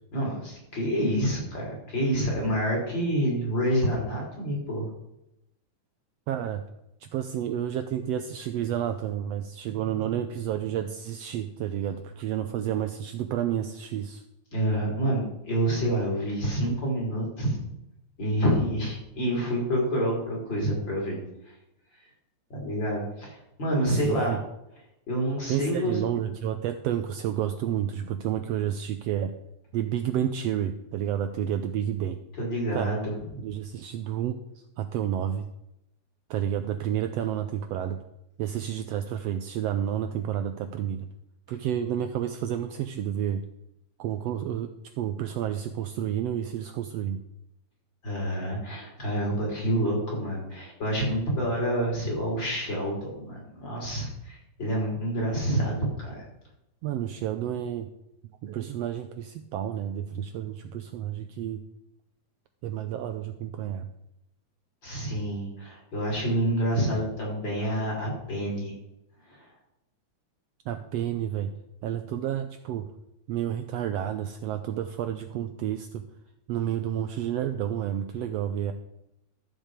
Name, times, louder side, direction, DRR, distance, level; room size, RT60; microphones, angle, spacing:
voice 1, 0.1-4.9 14.5-17.6 18.2-21.2 22.5-24.4 25.1-26.0 32.4-33.1 48.0-56.2 64.8-68.7 69.3-69.5, right 1 dB, 40° left, -2 dB, 4.5 m, -28 dB
voice 2, 6.3-6.6 7.0-14.2 23.9-24.4 25.5-29.3 29.7-32.2 32.7-32.9 33.4-34.4 34.8-35.4 36.3-38.0 38.4-41.1 41.5-43.4 44.0-44.7 45.0-47.2 56.8-57.9 58.4-61.6 62.6-63.9 70.7-71.5 71.8-72.9 73.3-76.0 76.5-78.7, right 10 dB, 80° right, 8 dB, 1.5 m, -30 dB
13.5 x 7.4 x 5.0 m, 0.85 s
omnidirectional pair, 3.3 m